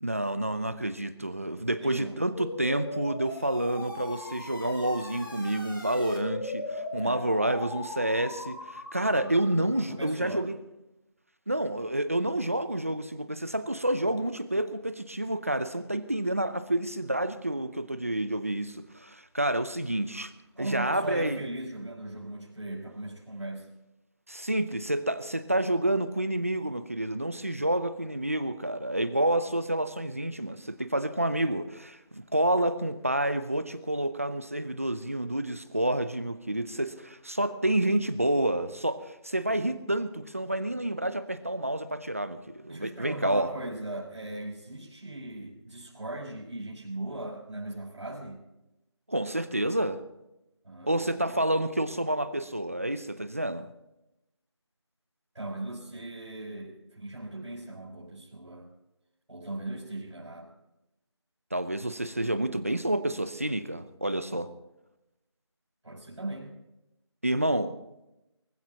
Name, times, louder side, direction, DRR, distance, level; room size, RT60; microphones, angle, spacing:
voice 1, 0.0-10.6 11.5-20.3 20.6-21.4 24.3-43.5 49.1-50.0 50.8-53.7 61.5-64.5 67.2-67.7, right 1 dB, 30° right, 12 dB, 0.6 m, -29 dB
voice 2, 1.8-2.2 6.9-7.3 9.1-9.3 9.9-10.5 20.6-23.7 42.7-48.4 50.6-51.3 55.3-58.7 59.3-60.5 65.8-66.5, right 2 dB, 80° right, -5 dB, 6.0 m, -38 dB
sound 1, 2.3-9.8, left 2 dB, 45° left, 4.2 m, -39 dB
24.0 x 15.5 x 2.9 m, 0.92 s
figure-of-eight pair, 180°, 15 cm